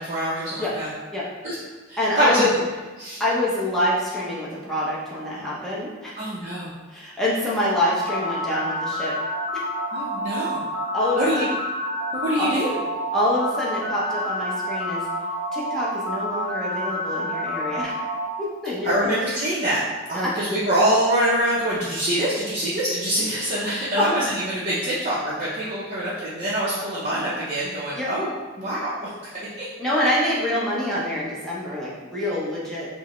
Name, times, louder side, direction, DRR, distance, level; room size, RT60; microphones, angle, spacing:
voice 1, 0.1-0.9 1.4-1.5 1.9-2.5 3.0-3.2 6.2-6.7 9.9-10.6 11.2-11.4 12.1-12.7 18.8-19.8 20.1-28.3 28.6-29.1 29.6-29.7, right 1 dB, 35° right, -9 dB, 0.6 m, -24 dB
voice 2, 2.0-2.5 3.2-6.1 6.9-9.1 10.9-11.5 12.4-12.5 13.1-15.1 15.5-17.9 18.4-19.1 20.1-20.3 24.0-24.1 28.0-28.1 29.8-32.9, left 1 dB, ahead, -8 dB, 0.8 m, -26 dB
sound 1, 7.7-18.3, equal, 65° left, 0.8 m, -28 dB
4.6 x 2.1 x 3.0 m, 1.3 s
head